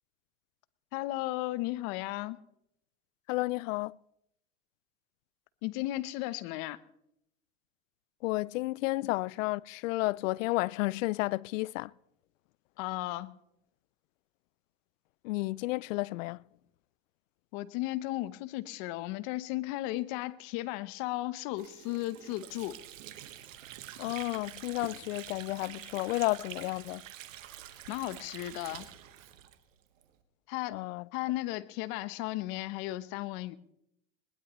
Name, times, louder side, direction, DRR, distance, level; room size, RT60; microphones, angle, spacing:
voice 1, 0.9-2.4 5.6-6.8 12.8-13.3 17.5-22.8 27.9-28.9 30.5-30.8 31.1-33.6, left 17 dB, 60° left, 1.0 m, -35 dB
voice 2, 3.3-4.0 8.2-11.9 15.2-16.4 24.0-27.0 30.7-31.0, left 20 dB, 80° left, 0.5 m, -32 dB
Water / Sink (filling or washing), 21.5-30.1, right 12 dB, 90° right, 1.5 m, -47 dB
21.5 x 19.5 x 3.1 m
supercardioid pair, 105°, 38 cm